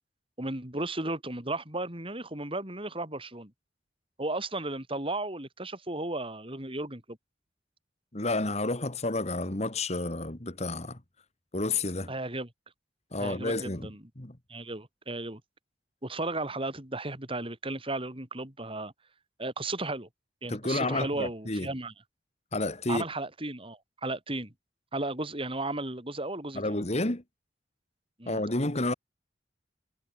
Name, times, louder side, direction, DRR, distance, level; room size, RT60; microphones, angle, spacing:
voice 1, 0.4-3.5 4.2-7.2 12.1-12.5 13.2-14.0 14.5-15.4 16.0-18.9 19.4-20.1 20.4-21.9 22.9-24.5 24.9-26.8 28.2-28.4, right 2 dB, 30° right, 5.7 m, -35 dB
voice 2, 8.1-11.0 11.5-12.1 13.1-13.9 14.2-14.4 20.5-21.7 22.5-23.0 26.5-27.2 28.3-28.9, left 2 dB, 40° left, 2.3 m, -30 dB
head